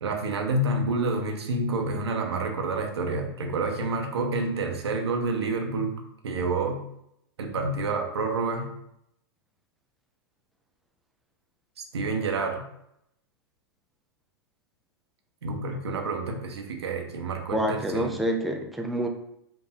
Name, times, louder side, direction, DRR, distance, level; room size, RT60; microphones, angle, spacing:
voice 1, 0.0-5.9 6.2-6.8 7.4-8.7 11.9-12.6 15.4-18.1, right 3 dB, 90° right, 3 dB, 0.9 m, -28 dB
voice 2, 17.5-19.1, right 1 dB, ahead, 2 dB, 0.4 m, -27 dB
4.7 x 2.6 x 3.6 m, 0.77 s
hypercardioid pair, 130°, 13 cm